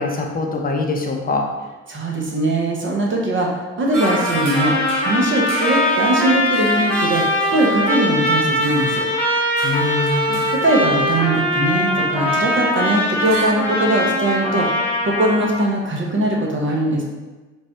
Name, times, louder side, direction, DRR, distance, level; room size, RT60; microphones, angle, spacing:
voice 1, 0.0-1.5 9.6-10.5, left 3 dB, 25° left, 1 dB, 0.8 m, -23 dB
voice 2, 1.9-4.7 5.0-9.0 10.5-14.7 15.0-17.0, right 1 dB, 30° right, -1 dB, 1.1 m, -20 dB
sound 1, 3.9-12.6 13.2-13.5, right 1 dB, 55° right, 1.3 m, -33 dB
Trumpet, 4.0-15.6, left 1 dB, 5° left, 1.2 m, -21 dB
4.3 x 2.5 x 3.4 m, 1.2 s
hypercardioid pair, 55°, 38 cm